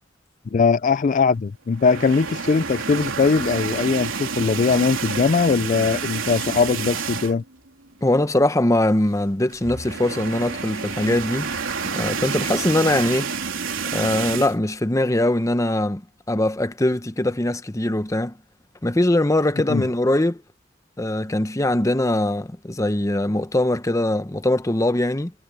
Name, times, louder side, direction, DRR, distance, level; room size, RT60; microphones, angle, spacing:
voice 1, 0.5-7.4 19.7-19.8, left 5 dB, 40° left, 0.4 m, -20 dB
sound 1, 1.7-7.6 7.9-8.1 8.4-8.5 9.5-14.6, right 5 dB, 80° right, 3.8 m, -29 dB
voice 2, 8.0-11.5 11.8-13.3 13.9-16.0 16.3-18.3 18.8-20.4 21.0-25.3, left 1 dB, 15° left, 0.8 m, -21 dB
head